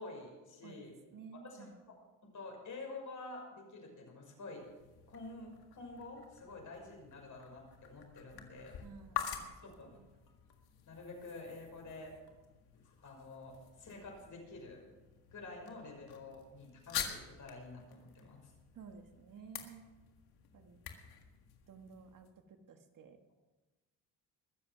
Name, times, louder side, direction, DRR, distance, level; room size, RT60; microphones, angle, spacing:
voice 1, 0.0-0.9 1.4-1.7 2.2-4.7 5.1-8.7 9.6-10.0 10.9-12.2 12.7-14.9 15.3-18.5, left 3 dB, 50° left, 1 dB, 6.0 m, -49 dB
voice 2, 0.6-1.8 8.8-10.1 18.7-19.9 20.5-20.8 21.7-23.2, right 5 dB, 55° right, 6 dB, 1.6 m, -54 dB
sound 1, 4.5-22.3, left 9 dB, 70° left, 1.9 m, -48 dB
21.5 x 7.5 x 6.1 m, 1.2 s
supercardioid pair, 75°, 38 cm